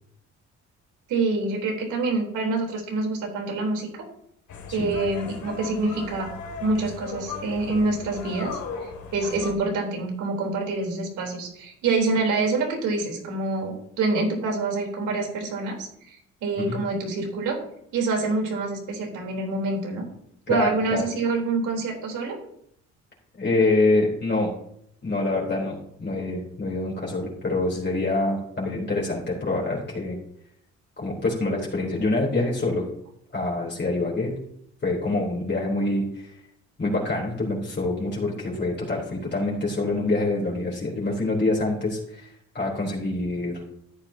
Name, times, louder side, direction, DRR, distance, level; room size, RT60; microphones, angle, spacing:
voice 1, 1.1-4.0 4.7-6.3 6.6-17.6 17.9-20.0 20.5-22.4, right 3 dB, 85° right, 0 dB, 3.8 m, -26 dB
sound 1, 4.5-9.5, left 5 dB, 70° left, 2.4 m, -37 dB
voice 2, 20.5-21.0 23.4-24.5 25.0-30.2 31.0-32.8 33.3-34.3 34.8-36.3 36.8-43.7, left 2 dB, 35° left, -3 dB, 3.8 m, -26 dB
13.5 x 10.0 x 2.9 m, 0.71 s
cardioid pair, 90°, 30 cm